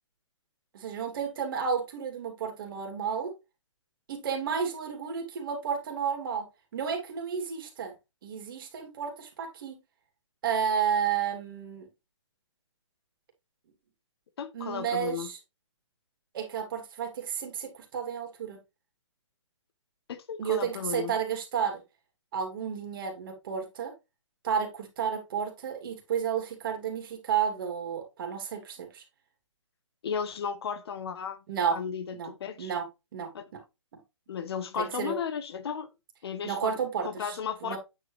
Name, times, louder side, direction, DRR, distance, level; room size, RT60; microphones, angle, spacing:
voice 1, 0.7-3.3 4.1-6.5 6.7-7.9 8.2-9.8 10.4-11.9 14.5-15.4 16.3-18.6 20.4-21.8 22.3-23.9 24.4-29.0 31.5-31.8 32.1-32.3 32.6-32.8 33.1-33.3 34.8-35.1 36.4-37.4 37.6-37.8, right 7 dB, 45° right, 2.8 m, -31 dB
voice 2, 14.4-15.3 20.1-21.1 30.0-31.4 31.7-32.7 33.3-33.4 34.3-35.9 36.2-37.8, left 7 dB, 55° left, 1.1 m, -35 dB
9.0 x 4.8 x 3.3 m
hypercardioid pair, 155°, 16 cm